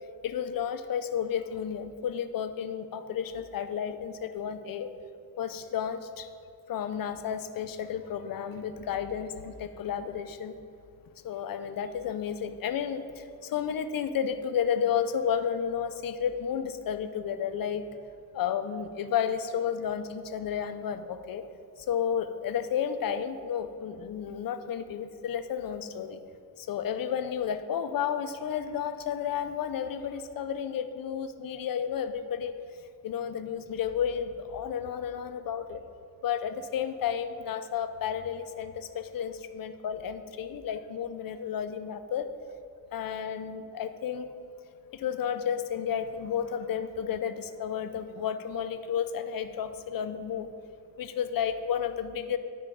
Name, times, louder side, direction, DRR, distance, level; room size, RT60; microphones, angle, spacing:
voice 1, 0.2-4.9 5.4-6.3 6.7-10.6 11.2-17.9 18.3-21.4 21.8-26.2 26.6-32.5 33.0-35.8 36.2-42.3 42.9-44.3 44.9-50.5 51.0-52.4, left 8 dB, 60° left, 10 dB, 0.6 m, -32 dB
9.9 x 4.8 x 4.7 m, 2.5 s
wide cardioid pair, 125°, 38 cm